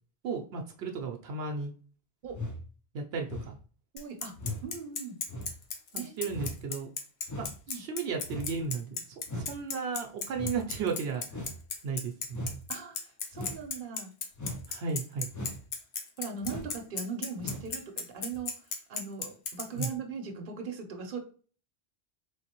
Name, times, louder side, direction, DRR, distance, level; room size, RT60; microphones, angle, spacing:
voice 1, 0.2-1.7 2.9-3.6 5.9-6.9 7.4-8.9 9.3-11.2 11.8-12.4 14.7-15.3 19.7-19.9, right 5 dB, 85° right, 3 dB, 0.9 m, -34 dB
sound 1, 2.3-2.6 3.3-3.6 4.3-4.6 5.3-5.5 6.3-6.6 7.3-7.6 8.2-8.5 9.2-9.5 10.3-10.6 11.3-11.6 12.3-12.6 13.3-13.6 14.3-14.6 15.3-15.6 16.4-16.8 17.4-17.7 18.3-18.4, left 1 dB, 20° left, 0.6 m, -38 dB
voice 2, 3.9-4.4 4.6-5.2 6.0-6.4 7.7-7.8 12.7-14.1 16.2-18.6 18.9-21.2, right 5 dB, 60° right, 4 dB, 0.9 m, -39 dB
Bicycle, 4.0-19.9, left 5 dB, 85° left, 1.0 m, -35 dB
3.9 x 3.2 x 2.9 m, 0.40 s
omnidirectional pair, 1.1 m